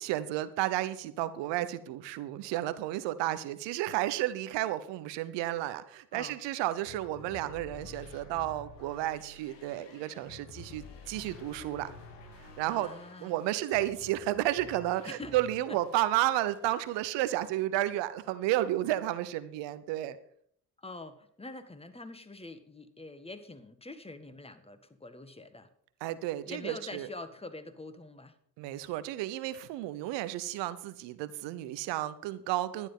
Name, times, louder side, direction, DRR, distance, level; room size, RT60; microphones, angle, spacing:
voice 1, 0.0-11.9 12.6-12.9 13.2-20.2 26.0-27.1 28.6-32.9, right 14 dB, 80° right, 14 dB, 1.0 m, -32 dB
sound 1, 6.9-16.0 16.3-17.1, left 4 dB, 80° left, 2.0 m, -51 dB
voice 2, 12.6-13.4 15.0-15.4 15.7-15.8 20.8-25.7 26.5-28.3, left 2 dB, 15° left, 11 dB, 1.7 m, -45 dB
12.0 x 10.0 x 5.5 m, 0.64 s
hypercardioid pair, 55°, 43 cm